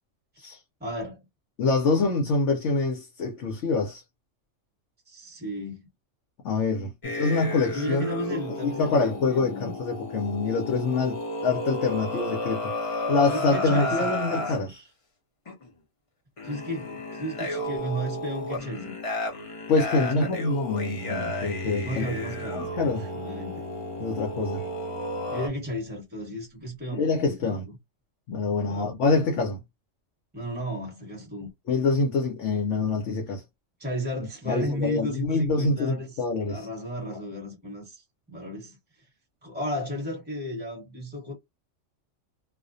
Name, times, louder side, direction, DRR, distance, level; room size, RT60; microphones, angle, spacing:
voice 1, 0.8-1.2 5.1-5.9 7.7-9.8 13.3-14.9 16.4-19.0 19.9-20.4 21.8-23.5 25.3-27.6 28.7-28.9 30.3-31.5 33.8-38.8 39.4-41.3, equal, 10° right, 1.1 m, -34 dB
voice 2, 1.6-4.0 6.4-8.1 8.6-14.8 19.7-22.1 22.5-23.0 24.0-24.6 27.0-27.6 28.3-29.6 31.7-33.4 34.2-36.7 37.1-37.2, left 3 dB, 70° left, 0.9 m, -26 dB
sound 1, 7.0-14.6 15.5-15.7 16.4-25.5, left 1 dB, 35° left, 0.6 m, -33 dB
Bowed string instrument, 21.0-25.9, equal, 80° right, 0.9 m, -41 dB
2.3 x 2.1 x 2.5 m
omnidirectional pair, 1.3 m